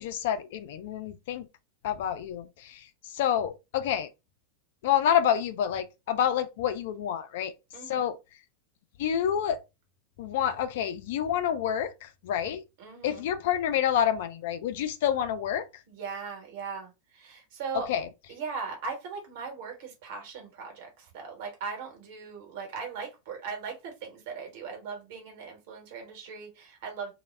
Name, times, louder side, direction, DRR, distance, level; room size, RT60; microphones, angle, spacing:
voice 1, 0.0-1.5 1.8-4.1 4.8-7.5 7.9-8.2 9.0-9.6 10.2-12.6 13.0-15.8 17.7-18.1, left 9 dB, 55° left, 0.3 m, -28 dB
voice 2, 7.7-8.1 12.4-13.2 15.9-17.9 18.3-27.1, right 5 dB, 50° right, 1.0 m, -39 dB
2.0 x 2.0 x 3.2 m
figure-of-eight pair, 90°, 0 cm